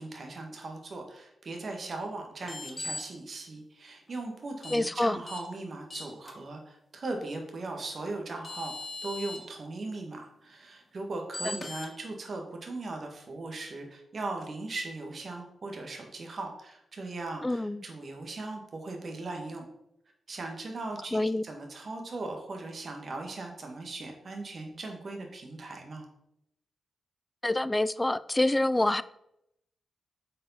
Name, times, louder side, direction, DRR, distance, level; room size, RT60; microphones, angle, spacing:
voice 1, 0.0-8.7 9.0-19.6 20.3-26.1, right 2 dB, 55° right, 1.5 m, -39 dB
sound 1, 2.4-3.0 4.6-4.8 5.3-5.4 5.9-6.3 8.0-8.1 8.4-9.4 11.3-11.9, left 2 dB, 35° left, 1.7 m, -38 dB
voice 2, 4.7-5.2 11.4-11.6 17.4-17.8 21.1-21.4 27.4-29.0, left 1 dB, 20° left, 0.3 m, -27 dB
7.2 x 4.7 x 4.2 m
cardioid pair, 50°, 0 cm